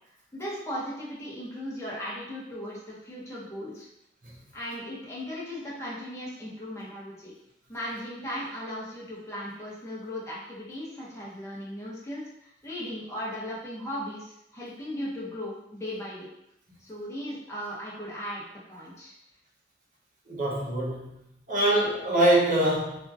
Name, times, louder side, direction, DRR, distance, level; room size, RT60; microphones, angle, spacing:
voice 1, 0.3-3.9 4.5-7.3 7.7-16.3 16.9-19.1 21.6-21.8, equal, 15° left, -7 dB, 0.8 m, -37 dB
voice 2, 20.3-21.2 21.5-23.0, right 1 dB, 50° right, -6 dB, 0.9 m, -24 dB
2.9 x 2.6 x 2.4 m, 0.83 s
head